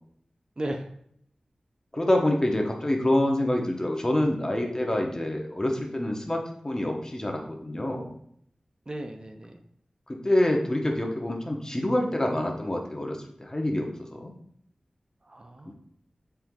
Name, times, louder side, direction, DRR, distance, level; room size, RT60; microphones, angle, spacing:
voice 1, 0.6-0.9 8.9-9.6 15.2-15.7, right 1 dB, 40° right, 5 dB, 0.5 m, -35 dB
voice 2, 1.9-8.1 10.1-14.3, left 1 dB, 30° left, 2 dB, 0.9 m, -26 dB
4.5 x 2.6 x 3.6 m, 0.68 s
cardioid pair, 45°, 2 cm